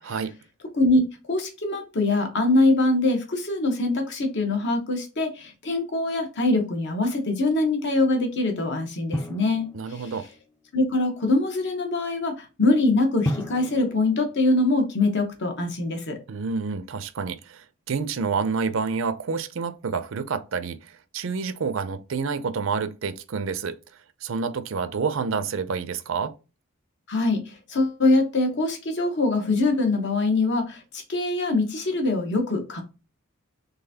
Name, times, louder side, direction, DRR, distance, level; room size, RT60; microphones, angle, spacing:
voice 1, 0.7-10.1 10.7-16.2 27.1-32.8, left 2 dB, 55° left, 1.1 m, -23 dB
Drum, 9.1-10.6 13.2-15.4, left 1 dB, 10° left, 0.4 m, -34 dB
voice 2, 9.7-10.3 16.3-23.8 24.2-26.3, right 5 dB, 65° right, 0.5 m, -28 dB
3.9 x 3.3 x 2.8 m
head